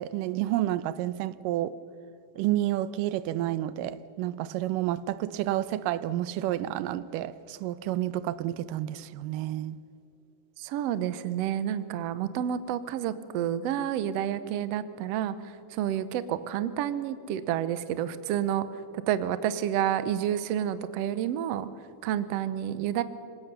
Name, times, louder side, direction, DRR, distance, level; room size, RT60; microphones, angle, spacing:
voice 1, 0.0-1.8 2.4-9.8, right 13 dB, 85° right, 2.3 m, -30 dB
voice 2, 10.6-15.3 15.7-18.6 19.1-21.7 22.0-23.0, right 10 dB, 70° right, 1.6 m, -29 dB
25.5 x 18.0 x 6.7 m
omnidirectional pair, 3.8 m